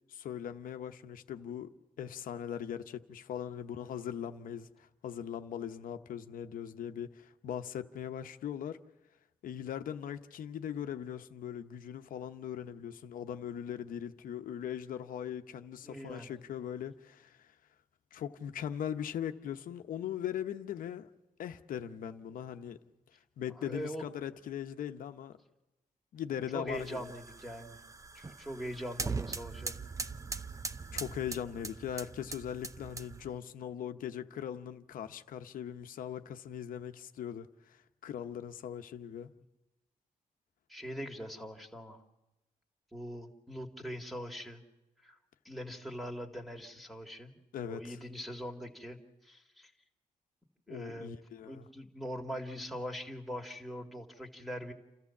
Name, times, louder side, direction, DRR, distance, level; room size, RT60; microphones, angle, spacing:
voice 1, 0.1-8.8 9.4-17.5 18.1-21.1 21.4-22.8 23.4-25.4 26.1-27.1 30.9-39.3 47.5-48.0 50.7-51.7, left 9 dB, 80° left, 0.9 m, -40 dB
voice 2, 15.8-16.3 23.6-24.0 26.5-27.8 28.1-29.8 40.7-42.0 42.9-44.6 45.0-45.2 45.4-47.4 47.6-49.7 50.7-51.1 51.5-54.7, equal, ahead, 2.3 m, -42 dB
sound 1, 26.7-33.4, right 4 dB, 25° right, 0.7 m, -41 dB
28.5 x 14.0 x 7.2 m
cardioid pair, 95°, 14 cm